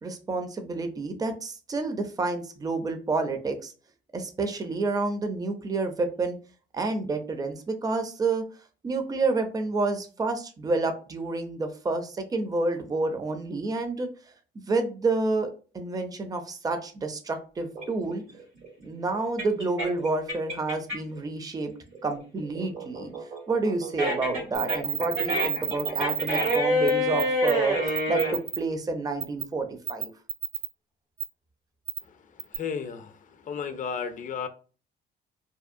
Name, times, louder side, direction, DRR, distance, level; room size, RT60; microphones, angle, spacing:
voice 1, 0.0-3.7 4.1-6.4 6.7-8.4 8.8-14.1 14.7-18.2 18.8-21.7 22.0-23.1 23.5-27.8 28.1-30.1, right 3 dB, 20° right, 6 dB, 0.4 m, -29 dB
sound 1, 17.8-21.2 21.6-28.3, equal, 90° right, 1.5 m, -28 dB
sound 2, 24.5-26.6 26.9-27.0 27.2-27.5 27.9-28.6 29.2-29.4 29.9-30.7 31.2-31.3 31.9-32.0 32.4-32.6, right 13 dB, 70° right, 0.6 m, -30 dB
voice 2, 32.5-33.1 33.5-34.5, left 6 dB, 40° left, 10 dB, 0.4 m, -33 dB
2.7 x 2.0 x 2.5 m, 0.37 s
cardioid pair, 90°, 20 cm